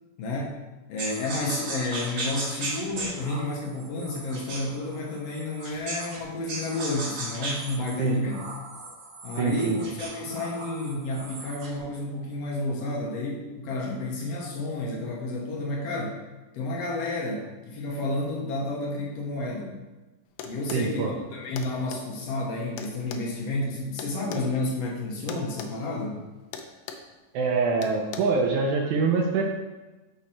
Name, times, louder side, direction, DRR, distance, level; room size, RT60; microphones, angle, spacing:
voice 1, 0.2-0.5 0.9-8.4 9.2-16.2 16.5-19.7 20.4-26.2, left 2 dB, 65° left, -1 dB, 1.6 m, -31 dB
sound 1, 1.0-6.2 6.5-11.8, right 2 dB, 55° right, 1.3 m, -36 dB
voice 2, 9.4-9.8 20.7-21.1 27.3-29.4, right 4 dB, 75° right, 1 dB, 1.7 m, -24 dB
sound 2, 20.4-20.9 21.6-22.0 22.8-24.5 25.3-25.7 26.0-26.2 26.5-27.1 27.8-28.2, left 6 dB, 85° left, 2.4 m, -39 dB
6.4 x 6.0 x 4.2 m, 1.1 s
omnidirectional pair, 4.0 m